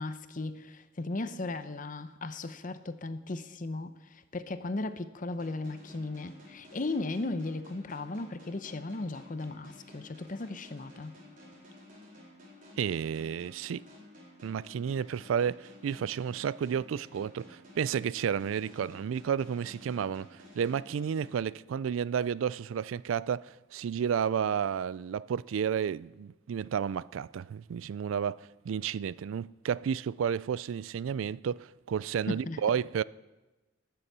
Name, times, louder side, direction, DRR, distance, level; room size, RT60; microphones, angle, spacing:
voice 1, 0.0-11.2 32.3-32.6, left 2 dB, 40° left, 0.7 m, -36 dB
sound 1, 5.4-22.0, left 1 dB, 45° right, 4.6 m, -53 dB
voice 2, 12.8-13.8 14.4-33.0, right 7 dB, 85° right, 0.3 m, -32 dB
20.0 x 6.9 x 6.8 m
head